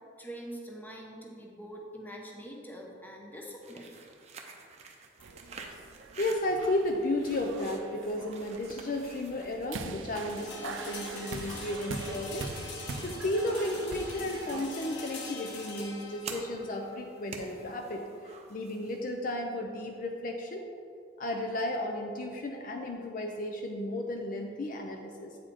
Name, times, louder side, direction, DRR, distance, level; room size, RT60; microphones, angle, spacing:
voice 1, 0.2-4.0, right 1 dB, 10° left, -1 dB, 0.9 m, -44 dB
sound 1, 3.5-19.1, right 4 dB, 35° right, 0.6 m, -50 dB
sound 2, 5.2-14.7, right 4 dB, 85° right, 0.5 m, -43 dB
voice 2, 6.2-12.5 13.0-20.7 21.2-25.4, left 1 dB, 45° left, 2 dB, 0.5 m, -33 dB
sound 3, 10.3-20.2, left 3 dB, 65° left, 0.9 m, -44 dB
8.5 x 5.0 x 4.3 m, 2.3 s
head